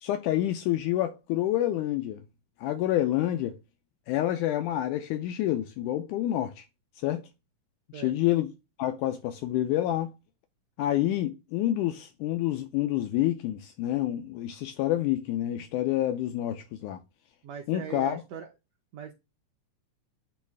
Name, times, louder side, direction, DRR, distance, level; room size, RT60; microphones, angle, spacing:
voice 1, 0.0-2.2 2.6-3.6 4.1-6.7 7.0-7.3 7.9-8.5 8.8-10.1 10.8-17.0 17.7-18.2, left 13 dB, 80° left, 2.1 m, -28 dB
voice 2, 17.4-18.5 18.9-19.1, right 7 dB, 75° right, 1.6 m, -40 dB
8.5 x 3.1 x 3.5 m
omnidirectional pair, 3.8 m